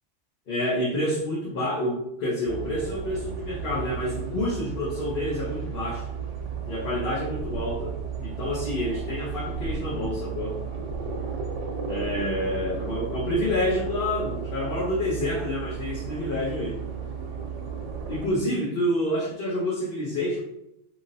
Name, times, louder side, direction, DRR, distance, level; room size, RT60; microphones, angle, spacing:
voice 1, 0.5-6.1 6.7-8.0 8.2-10.6 11.9-16.8 18.1-20.4, left 1 dB, 55° left, -6 dB, 0.8 m, -28 dB
sound 1, 2.5-18.3, right 6 dB, 85° right, 0.9 m, -34 dB
3.0 x 2.6 x 2.6 m, 0.81 s
omnidirectional pair, 1.2 m